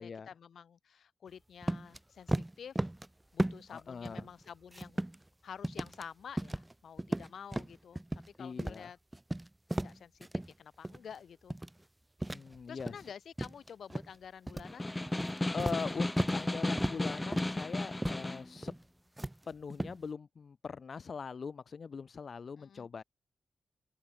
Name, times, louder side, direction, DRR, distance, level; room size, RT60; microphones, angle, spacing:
voice 1, 0.0-2.9 3.3-5.0 5.4-8.0 8.4-9.0 9.8-11.6 12.7-14.9 22.6-22.9, left 7 dB, 65° left, 6.2 m, -50 dB
sound 1, 1.6-2.0 2.3-3.1 3.4-3.8 4.1-5.3 5.6-6.0 6.4-6.7 7.0-8.3 8.6-8.8 9.1-10.5 10.8-11.1 11.5-11.8 12.2-13.1 13.4-14.1 14.5-14.7 15.1-16.4 16.8-17.1 17.3-17.6 18.0-18.2 18.6-18.8 19.2-20.0, right 1 dB, 10° right, 1.7 m, -36 dB
voice 2, 3.7-4.3 8.4-8.9 12.3-13.1 15.5-18.8 19.5-23.0, left 5 dB, 45° left, 1.0 m, -41 dB
Snare drum, 14.6-18.5, left 1 dB, 10° left, 0.5 m, -34 dB
open air
wide cardioid pair, 170°, 0 cm